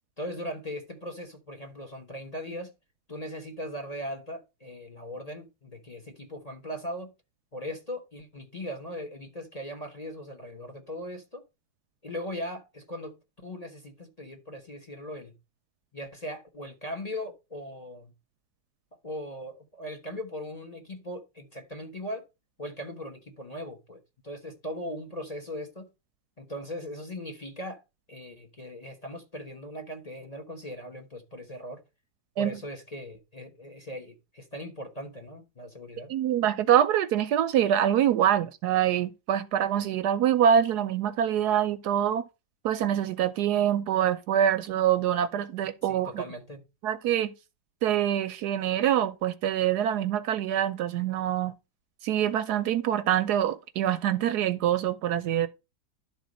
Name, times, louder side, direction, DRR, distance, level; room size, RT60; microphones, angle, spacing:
voice 1, 0.2-2.7 3.1-7.1 7.5-11.4 12.0-15.3 15.9-18.1 19.0-22.2 22.6-25.9 26.4-27.8 28.1-31.8 32.4-36.1 45.8-46.6, equal, 25° left, 1.0 m, -39 dB
voice 2, 36.1-42.2 42.6-46.2 46.8-47.3 47.8-51.5 52.0-55.5, right 10 dB, 70° right, 1.1 m, -25 dB
11.5 x 3.9 x 5.1 m
omnidirectional pair, 1.9 m